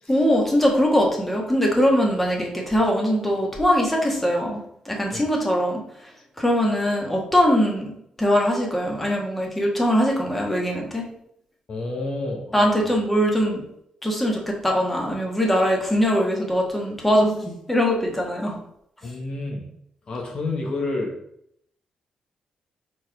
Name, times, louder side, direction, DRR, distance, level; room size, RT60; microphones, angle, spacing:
voice 1, 0.1-5.8 6.4-11.1 12.5-13.6 14.0-18.6, equal, 5° left, -1 dB, 1.5 m, -21 dB
voice 2, 11.7-12.9 19.0-19.7 20.1-21.1, left 2 dB, 40° left, 1 dB, 1.3 m, -30 dB
4.6 x 4.5 x 5.9 m, 0.73 s
cardioid pair, 140°, 2 cm